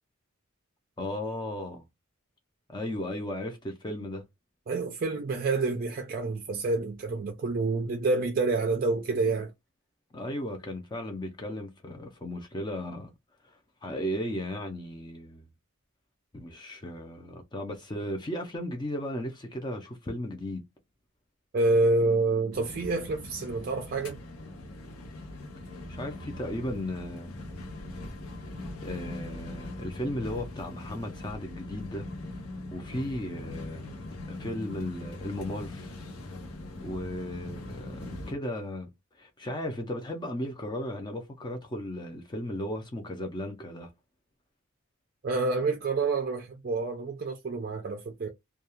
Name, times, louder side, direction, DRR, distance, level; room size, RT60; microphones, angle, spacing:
voice 1, 1.0-1.8 2.7-4.2 10.1-13.1 13.4-15.5 16.3-20.6 25.9-27.3 28.8-32.1 32.7-33.9 34.3-35.9 36.8-38.9 39.1-43.9, left 1 dB, 20° left, 0.5 m, -35 dB
voice 2, 4.7-9.5 21.5-24.2 45.2-48.3, right 3 dB, 40° right, 0.4 m, -28 dB
sound 1, 22.5-38.3, left 1 dB, 90° left, 0.8 m, -41 dB
2.3 x 2.3 x 2.9 m
head